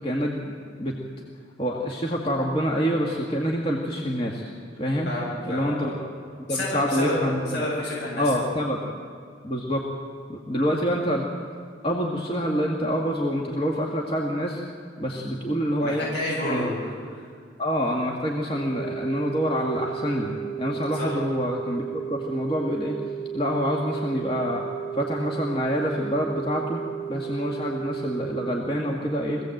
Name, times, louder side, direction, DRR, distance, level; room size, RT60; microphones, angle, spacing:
voice 1, 0.0-1.0 1.6-5.1 5.4-5.9 6.5-7.7 8.2-8.8 9.4-9.9 10.3-11.3 11.8-14.6 15.0-16.1 16.5-16.7 17.6-23.0 23.3-24.7 24.9-26.8 27.1-29.4, equal, 30° left, -1 dB, 1.8 m, -26 dB
voice 2, 5.1-5.9 6.5-7.2 7.5-8.5 15.8-16.9 21.0-21.1, left 1 dB, 65° left, -5 dB, 7.9 m, -29 dB
sound 1, 18.5-28.5, right 8 dB, 85° left, 5.6 m, -34 dB
23.5 x 16.5 x 7.9 m, 2.1 s
head